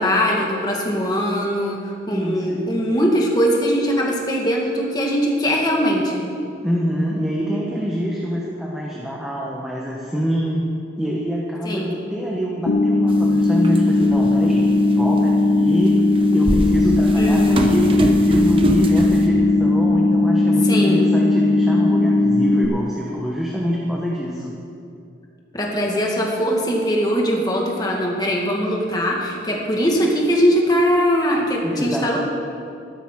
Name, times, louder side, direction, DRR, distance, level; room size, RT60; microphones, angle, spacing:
voice 1, 0.0-6.2 11.6-11.9 17.1-17.7 20.6-21.1 25.5-32.2, equal, 20° left, -1 dB, 1.6 m, -21 dB
voice 2, 2.1-2.7 6.6-10.7 11.0-14.6 14.9-16.0 16.3-24.6 31.6-32.2, equal, 5° right, -4 dB, 1.0 m, -25 dB
sound 1, 12.7-22.7, left 2 dB, 60° left, 0.5 m, -17 dB
sound 2, 13.1-13.2 13.6-14.2 14.9-15.0 16.0-19.3, right 1 dB, 30° right, 0.7 m, -24 dB
14.0 x 12.0 x 3.7 m, 2.5 s
head